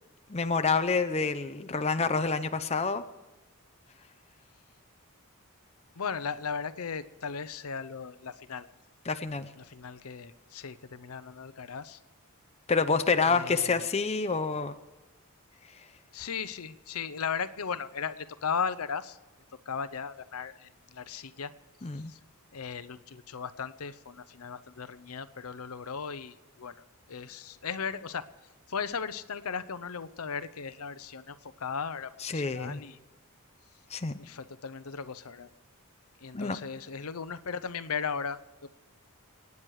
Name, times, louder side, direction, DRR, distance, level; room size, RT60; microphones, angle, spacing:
voice 1, 0.3-3.0 9.1-9.5 12.7-14.8 21.8-22.1 32.2-32.8 33.9-34.2 36.3-36.6, left 4 dB, 30° left, 8 dB, 0.7 m, -28 dB
voice 2, 5.9-8.7 9.6-12.0 13.2-13.9 16.1-19.2 19.7-21.5 21.9-22.2 22.5-28.3 28.7-33.0 34.2-35.5 36.2-38.7, left 6 dB, 75° left, 13 dB, 0.7 m, -37 dB
27.0 x 9.6 x 4.8 m, 1.2 s
head